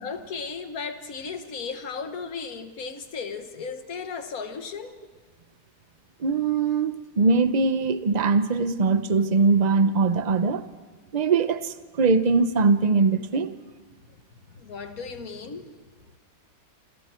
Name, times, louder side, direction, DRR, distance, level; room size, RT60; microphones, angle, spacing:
voice 1, 0.0-5.0 14.5-15.7, left 5 dB, 60° left, 1.8 m, -35 dB
voice 2, 6.2-10.6 11.1-13.5, right 4 dB, 35° right, 0.7 m, -22 dB
28.0 x 27.0 x 4.5 m
omnidirectional pair, 1.8 m